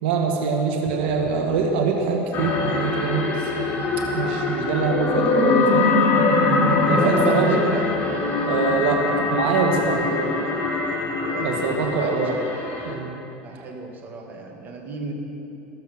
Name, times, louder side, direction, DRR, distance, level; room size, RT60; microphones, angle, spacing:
voice 1, 0.0-3.8 4.1-5.9 6.9-7.6 8.4-10.3 11.4-12.3 12.9-13.2, right 4 dB, 85° right, 2 dB, 1.5 m, -24 dB
sound 1, 2.3-12.9, left 3 dB, 35° left, 2.3 m, -23 dB
voice 2, 6.6-7.9 11.2-12.6 13.4-15.1, right 3 dB, 35° right, 1 dB, 2.0 m, -31 dB
20.5 x 7.5 x 6.1 m, 2.8 s
supercardioid pair, 130°, 6 cm